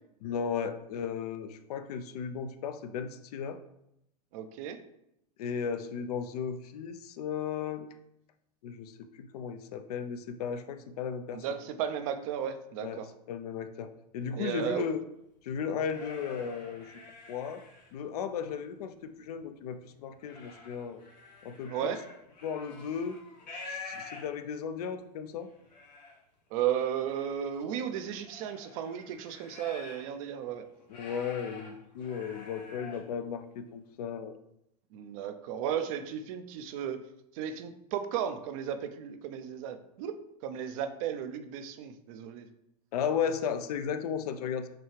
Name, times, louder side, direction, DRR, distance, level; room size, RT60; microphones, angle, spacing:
voice 1, 0.2-3.6 5.4-7.9 8.6-11.4 12.8-15.0 15.4-16.9 17.3-17.6 17.9-21.0 21.4-22.0 22.4-23.2 23.7-25.5 30.9-34.3 42.9-44.7, left 7 dB, 65° left, 10 dB, 0.5 m, -35 dB
voice 2, 4.3-4.8 11.3-13.1 14.4-14.9 21.7-22.0 26.5-30.7 34.9-37.0 37.3-42.5, right 9 dB, 55° right, 9 dB, 0.5 m, -34 dB
sound 1, 15.4-18.2 18.7-19.4 19.8-24.6 25.2-25.3 25.5-26.2 26.7-30.2 30.5-33.1, left 4 dB, 80° left, 1.1 m, -48 dB
5.7 x 2.3 x 3.2 m, 0.80 s
hypercardioid pair, 95°, 21 cm